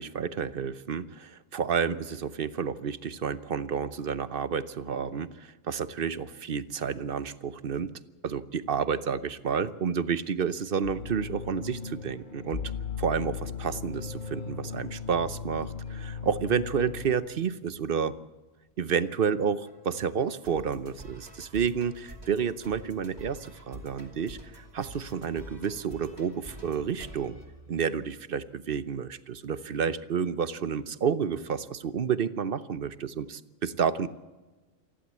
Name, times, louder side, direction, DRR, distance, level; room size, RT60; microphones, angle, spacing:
voice 1, 0.0-7.9 8.2-12.6 13.0-18.1 18.8-27.4 27.7-34.1, right 6 dB, 50° right, 14 dB, 0.9 m, -30 dB
sound 1, 10.8-17.1, left 6 dB, 40° left, 1.4 m, -37 dB
sound 2, 19.7-28.2, right 1 dB, 30° right, 2.9 m, -48 dB
27.5 x 11.5 x 8.3 m, 1.2 s
omnidirectional pair, 1.4 m